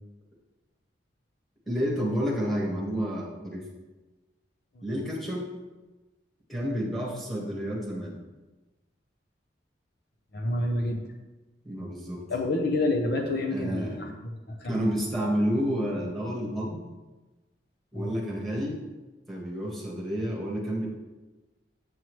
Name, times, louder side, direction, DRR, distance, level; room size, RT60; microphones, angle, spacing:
voice 1, 1.7-3.7 4.8-5.5 6.5-8.2 11.6-12.2 13.4-14.1 14.7-16.8 17.9-18.8 19.3-20.9, equal, ahead, -5 dB, 1.6 m, -30 dB
voice 2, 10.3-11.0 12.3-14.8 17.9-18.1, left 2 dB, 60° left, 3 dB, 0.8 m, -28 dB
7.7 x 7.3 x 3.2 m, 1.2 s
head